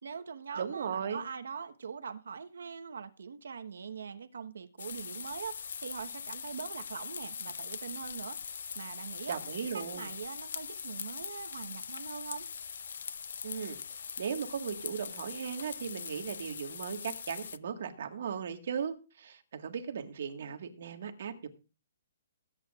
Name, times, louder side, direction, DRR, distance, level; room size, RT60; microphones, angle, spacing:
voice 1, 0.0-8.4 8.7-9.4 9.7-12.5, right 6 dB, 80° right, 1.2 m, -42 dB
voice 2, 0.5-1.2 9.3-10.1 13.4-21.5, right 7 dB, 50° right, 1.7 m, -37 dB
sound 1, 4.8-17.6, left 7 dB, 60° left, 0.5 m, -42 dB
20.5 x 9.4 x 2.5 m
hypercardioid pair, 175°, 0 cm